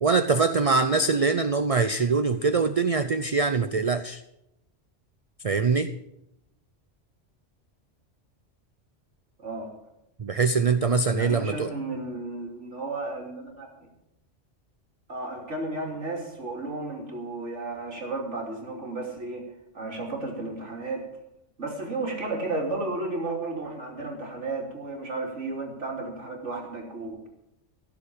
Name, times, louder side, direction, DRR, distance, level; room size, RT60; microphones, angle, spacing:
voice 1, 0.0-4.2 5.4-5.9 10.2-11.7, right 4 dB, 40° right, 10 dB, 0.5 m, -23 dB
voice 2, 9.4-9.7 11.1-13.7 15.1-19.4 19.7-21.1 21.6-27.3, right 2 dB, 75° right, 0 dB, 3.4 m, -33 dB
16.0 x 7.2 x 8.7 m, 0.85 s
omnidirectional pair, 1.2 m